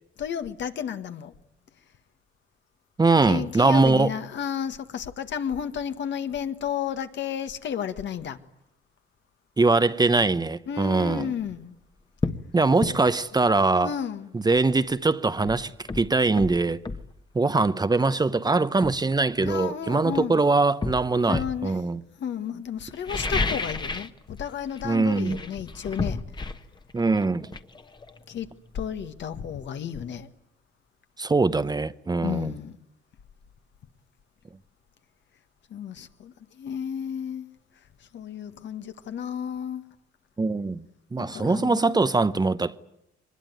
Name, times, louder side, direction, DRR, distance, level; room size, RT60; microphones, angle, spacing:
voice 1, 0.2-1.3 3.3-8.4 10.7-11.7 13.8-14.3 19.5-20.4 21.3-21.8 22.2-26.2 27.8-28.0 28.3-28.5 28.7-30.3 32.2-32.8 35.7-37.5 38.1-39.8 41.2-42.1, left 8 dB, 65° left, 1.7 m, -32 dB
voice 2, 3.0-4.1 9.6-11.3 12.5-13.9 14.3-16.8 17.3-22.0 24.8-25.4 26.9-27.5 31.2-32.5 40.4-40.8 41.1-42.8, right 3 dB, 20° right, 0.8 m, -22 dB
sound 1, 11.4-11.6 12.2-12.5 12.8-13.0 14.9-15.0 15.4-17.1 18.2-18.3 18.8-20.2 20.8-21.6 22.9-24.2 24.4-24.8 25.1-28.7 29.0-29.1, left 3 dB, 20° left, 1.3 m, -31 dB
23.5 x 20.5 x 9.4 m
cardioid pair, 90°, 20 cm